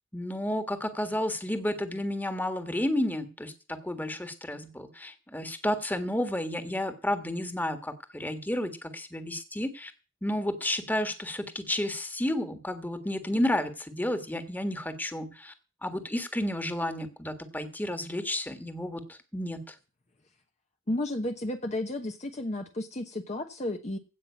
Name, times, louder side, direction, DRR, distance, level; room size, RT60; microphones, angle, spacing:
voice 1, 0.1-9.9 10.2-15.5 15.8-19.8, left 1 dB, 10° left, 9 dB, 1.6 m, -31 dB
voice 2, 20.9-24.0, left 1 dB, 35° left, 5 dB, 1.0 m, -32 dB
16.5 x 5.7 x 8.4 m, 0.35 s
head